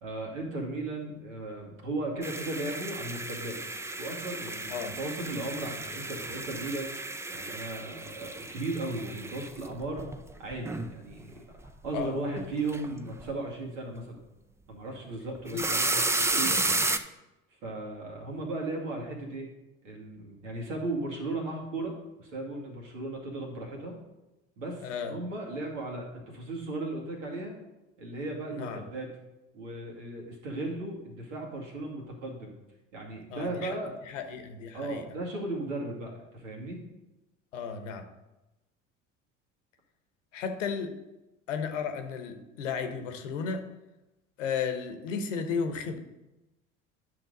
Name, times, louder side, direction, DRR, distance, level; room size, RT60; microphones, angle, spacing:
voice 1, 0.0-3.6 4.0-6.9 7.3-10.1 10.4-14.2 14.7-16.8 17.5-19.5 19.8-24.0 24.6-27.6 28.0-29.1 29.5-32.5 32.9-33.9 34.7-36.8, right 2 dB, 75° right, 0 dB, 2.2 m, -36 dB
sound 1, 2.2-11.1 11.5-12.1 12.4-12.9 13.2-13.3 15.4-17.0, right 2 dB, 10° right, 0.4 m, -32 dB
voice 2, 24.8-25.2 28.5-28.8 33.3-33.8 34.1-35.0 37.5-38.0 40.3-40.9 41.5-43.6 44.4-46.0, left 6 dB, 75° left, 7 dB, 1.1 m, -34 dB
9.7 x 6.0 x 4.0 m, 1.0 s
hypercardioid pair, 70°, 37 cm